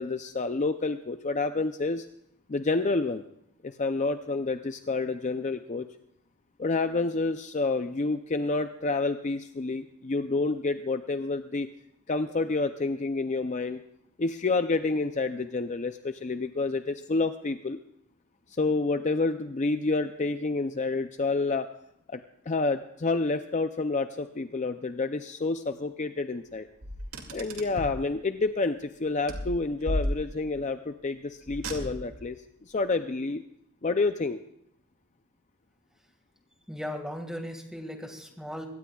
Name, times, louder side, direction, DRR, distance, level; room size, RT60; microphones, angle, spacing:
voice 1, 0.0-2.1 2.5-3.2 3.6-5.9 6.6-11.7 12.1-13.8 14.2-17.8 18.5-21.7 22.1-22.2 22.5-26.7 27.3-32.4 32.6-33.4 33.8-34.4, left 3 dB, 35° left, 9 dB, 0.5 m, -29 dB
Car, 26.8-28.0 29.3-30.6 31.5-32.3, equal, 65° right, 2.3 m, -34 dB
voice 2, 36.7-38.7, equal, 5° right, 4 dB, 1.8 m, -37 dB
23.0 x 17.5 x 2.3 m, 0.76 s
head